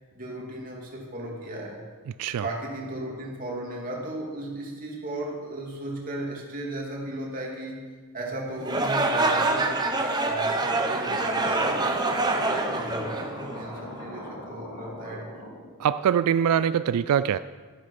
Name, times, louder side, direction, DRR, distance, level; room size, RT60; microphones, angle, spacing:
voice 1, 0.1-1.8 2.4-7.8 8.1-10.6 10.9-13.3 13.5-15.3, right 1 dB, 40° right, -2 dB, 2.9 m, -35 dB
sound 1, 8.6-13.8, right 2 dB, 20° right, 1.0 m, -26 dB
sound 2, 11.0-16.8, equal, 85° left, 3.0 m, -40 dB
voice 2, 15.8-17.4, right 8 dB, 90° right, 14 dB, 0.3 m, -23 dB
12.5 x 10.0 x 5.9 m, 1.5 s
head